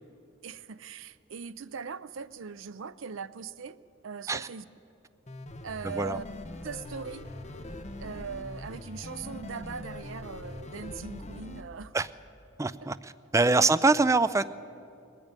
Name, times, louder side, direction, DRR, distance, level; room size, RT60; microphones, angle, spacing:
voice 1, 0.4-3.8 4.0-4.6 5.6-6.2 6.6-7.2 8.0-11.9 12.8-12.9, right 6 dB, 70° right, 16 dB, 0.5 m, -40 dB
sound 1, 5.3-11.6, left 1 dB, 35° left, 1.0 m, -42 dB
sound 2, 5.5-10.6, equal, 65° left, 3.2 m, -51 dB
voice 2, 5.8-6.2 11.9-12.1 12.6-14.5, right 3 dB, 15° right, 14 dB, 0.4 m, -24 dB
21.0 x 14.0 x 9.0 m, 2.7 s
head